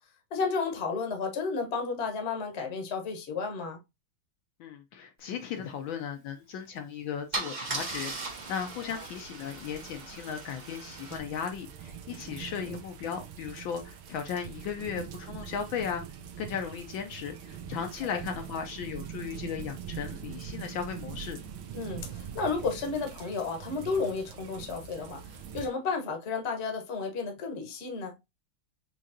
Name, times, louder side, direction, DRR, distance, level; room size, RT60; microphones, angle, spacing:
voice 1, 0.3-3.8 8.9-9.0 12.5-12.8 21.7-28.2, left 4 dB, 40° left, 1.1 m, -32 dB
voice 2, 4.6-16.0 16.4-21.4, left 7 dB, 70° left, 1.3 m, -36 dB
Car / Engine starting / Idling, 6.6-6.8 7.3-11.2, right 3 dB, 40° right, 0.6 m, -38 dB
sound 1, 7.6-25.7, right 9 dB, 80° right, 1.7 m, -44 dB
6.3 x 3.1 x 2.7 m
omnidirectional pair, 2.3 m